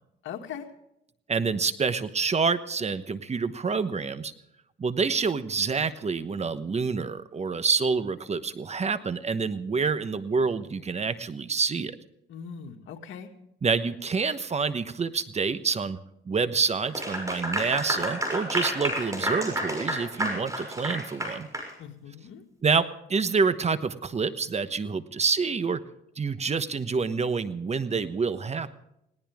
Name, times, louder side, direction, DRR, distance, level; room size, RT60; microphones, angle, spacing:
voice 1, 0.2-0.7 12.3-13.3 21.8-22.4, left 7 dB, 80° left, 4 dB, 2.1 m, -40 dB
voice 2, 1.3-4.3 4.8-12.0 13.6-16.0 16.3-21.5 22.6-25.8 26.2-28.7, right 5 dB, 35° right, 13 dB, 1.1 m, -27 dB
Clapping / Applause, 16.8-21.7, equal, 15° right, 6.5 m, -30 dB
20.0 x 18.0 x 3.6 m, 0.79 s
cardioid pair, 90°, 20 cm